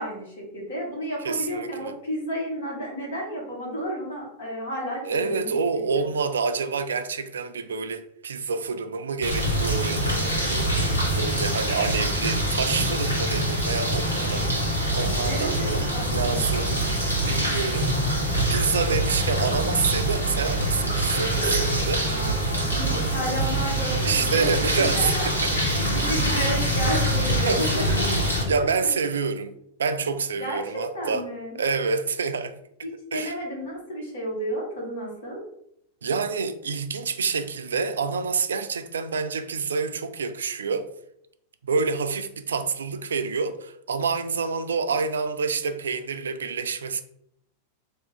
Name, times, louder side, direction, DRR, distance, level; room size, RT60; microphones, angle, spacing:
voice 1, 0.0-5.9 15.3-16.5 22.0-28.2 30.4-31.5 32.8-35.4, equal, 65° left, 1.4 m, -32 dB
voice 2, 1.2-2.0 5.0-10.7 11.2-14.5 14.9-16.8 17.3-17.9 18.5-22.1 24.0-25.1 27.5-27.7 28.5-29.5 29.8-31.3 31.5-32.5 33.1-33.4 36.0-40.9 41.6-47.0, right 5 dB, 70° right, 0.3 m, -27 dB
sound 1, 9.2-28.4, right 1 dB, 85° left, 1.1 m, -24 dB
2.9 x 2.5 x 3.8 m
figure-of-eight pair, 90°, 0 cm